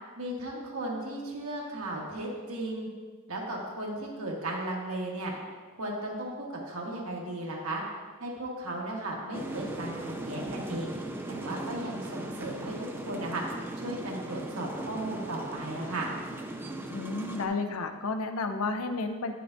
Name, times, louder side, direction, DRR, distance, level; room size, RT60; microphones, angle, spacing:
voice 1, 0.2-2.9 3.3-5.3 5.7-7.8 8.2-10.9 11.3-13.4 13.8-16.1, right 1 dB, 75° right, -2 dB, 1.4 m, -35 dB
sound 1, 9.3-17.5, right 1 dB, 10° right, 0.4 m, -38 dB
voice 2, 16.9-19.3, left 3 dB, 75° left, 7 dB, 0.6 m, -32 dB
9.1 x 6.7 x 2.6 m, 1.5 s
head